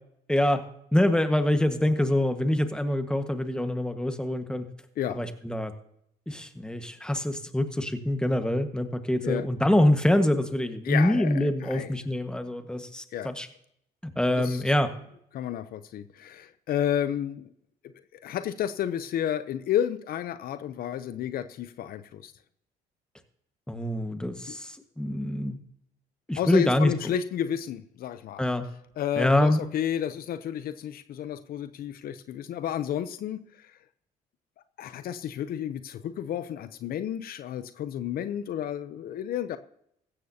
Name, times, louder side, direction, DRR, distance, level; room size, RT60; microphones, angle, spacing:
voice 1, 0.3-0.6 0.9-4.6 5.1-5.7 6.3-13.5 14.1-14.9 23.7-25.6 26.3-26.9 28.4-28.6 29.2-29.6, left 1 dB, 5° left, 7 dB, 1.5 m, -25 dB
voice 2, 10.8-11.9 13.1-13.3 14.4-14.6 15.3-17.5 18.2-22.3 24.5-24.6 26.4-28.4 29.0-33.7 34.8-39.6, left 10 dB, 70° left, 12 dB, 0.7 m, -31 dB
15.5 x 13.0 x 2.8 m, 0.72 s
supercardioid pair, 75°, 16 cm